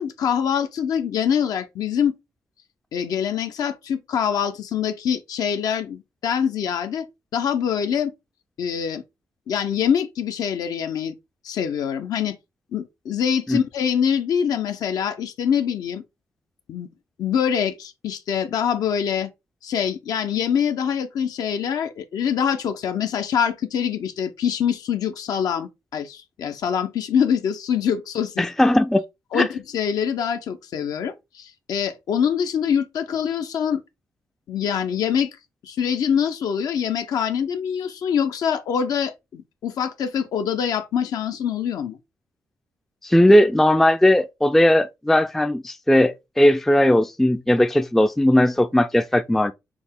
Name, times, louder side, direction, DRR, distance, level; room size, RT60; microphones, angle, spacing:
voice 1, 0.0-2.2 2.9-7.0 7.3-8.1 8.6-9.0 9.5-11.1 11.4-12.4 12.7-16.0 16.7-16.9 17.2-19.3 19.6-28.5 29.3-33.8 34.5-35.3 35.6-42.0, left 8 dB, 80° left, 0.6 m, -24 dB
voice 2, 28.4-29.0 29.3-29.5 43.0-49.5, left 1 dB, 5° left, 0.3 m, -18 dB
5.9 x 2.1 x 3.6 m
cardioid pair, 95°, 6 cm